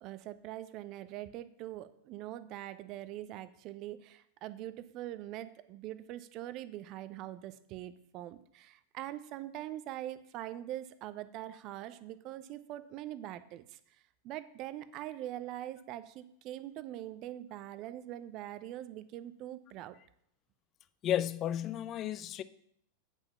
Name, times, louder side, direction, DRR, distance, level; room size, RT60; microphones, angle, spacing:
voice 1, 0.0-13.8 14.2-20.0, right 13 dB, 40° right, 0.5 m, -43 dB
voice 2, 21.0-22.4, left 11 dB, 30° left, 0.5 m, -33 dB
8.9 x 5.7 x 5.5 m
figure-of-eight pair, 90°, 0 cm